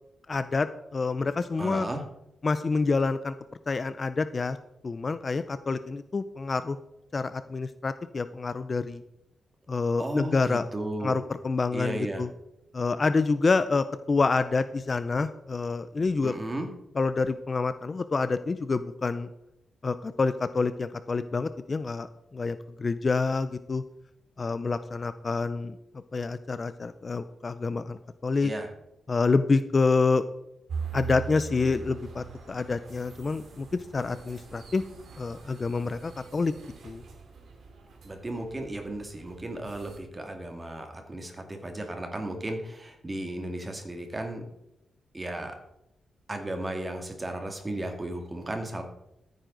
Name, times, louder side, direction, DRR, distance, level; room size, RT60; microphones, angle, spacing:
voice 1, 0.3-1.9 2.4-3.3 3.7-4.6 4.8-6.8 7.1-9.0 9.7-10.7 11.0-12.3 12.7-16.3 17.0-19.3 19.8-22.1 22.3-23.8 24.4-25.8 26.1-28.5 29.1-30.2 30.9-33.7 33.9-34.8 35.2-36.5 36.8-37.0, left 4 dB, 35° left, 12 dB, 0.5 m, -27 dB
voice 2, 1.6-2.0 10.0-11.2 11.7-12.2 16.2-16.7 28.4-28.7 38.0-44.4 45.1-45.6 46.3-48.8, right 1 dB, 20° right, 4 dB, 2.1 m, -35 dB
sound 1, 30.7-40.0, right 6 dB, 70° right, 2.6 m, -42 dB
14.5 x 9.1 x 3.9 m, 0.84 s
wide cardioid pair, 130°, 0 cm